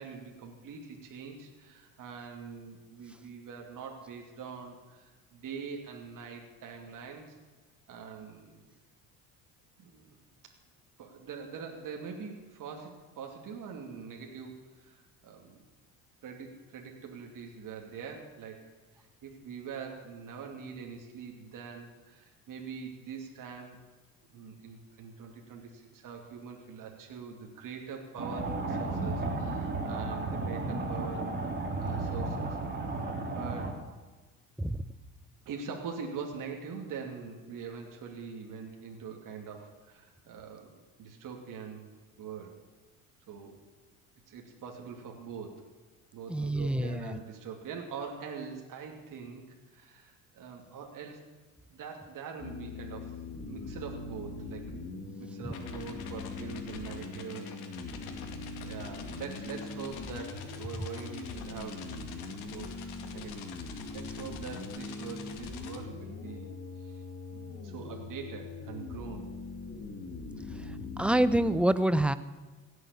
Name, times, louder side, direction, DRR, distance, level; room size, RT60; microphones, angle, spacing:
voice 1, 0.0-7.4 7.9-8.7 9.8-10.2 10.4-10.5 11.0-15.6 16.2-18.7 19.0-23.8 24.3-32.6 32.8-33.8 35.5-41.8 42.2-42.5 43.3-43.6 44.3-45.6 46.1-51.2 51.7-53.2 53.5-54.7 55.2-57.6 58.6-62.1 62.5-66.5 66.8-67.0 67.3-69.3, right 6 dB, 50° right, 1 dB, 2.7 m, -43 dB
sound 1, 28.2-33.7, right 3 dB, 25° right, 3.1 m, -33 dB
voice 2, 46.3-47.0 71.0-72.1, right 1 dB, 5° right, 14 dB, 0.7 m, -26 dB
sound 2, 52.4-71.6, left 3 dB, 30° left, 2.6 m, -41 dB
sound 3, 55.5-65.8, left 7 dB, 65° left, 2.3 m, -49 dB
16.5 x 8.1 x 8.4 m, 1.3 s
supercardioid pair, 85°, 41 cm